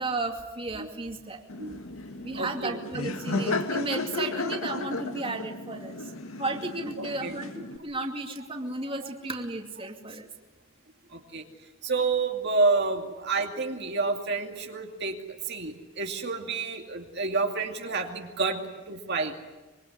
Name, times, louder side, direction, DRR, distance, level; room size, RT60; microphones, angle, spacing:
voice 1, 0.0-1.4 2.2-6.0 6.4-10.3, right 2 dB, 25° right, 3 dB, 2.6 m, -34 dB
Laughter, 1.5-7.8, left 3 dB, 80° left, 2.0 m, -34 dB
voice 2, 2.3-2.8 7.0-7.4 9.0-9.1 11.1-11.4 11.8-19.3, right 3 dB, 55° right, 2 dB, 2.5 m, -29 dB
25.0 x 24.0 x 9.8 m, 1.2 s
head